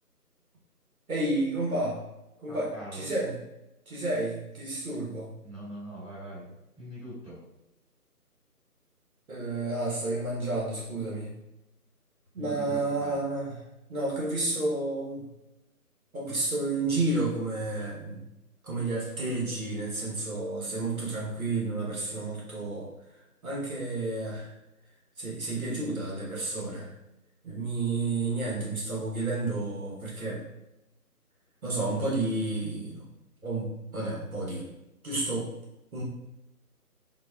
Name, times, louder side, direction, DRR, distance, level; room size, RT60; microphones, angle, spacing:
voice 1, 1.1-2.0 2.4-3.4 3.9-5.3 9.3-11.3 12.3-13.6 13.9-15.3 16.1-18.2 18.6-22.9 23.4-24.5 25.2-26.9 27.4-30.4 31.6-33.1 33.4-34.7 35.0-35.5 35.9-36.0, right 2 dB, 60° right, -4 dB, 1.1 m, -31 dB
voice 2, 2.5-3.0 5.4-7.4 12.4-13.2, right 1 dB, 5° right, -24 dB, 1.2 m, -42 dB
4.1 x 2.1 x 2.3 m, 0.92 s
figure-of-eight pair, 160°, 47 cm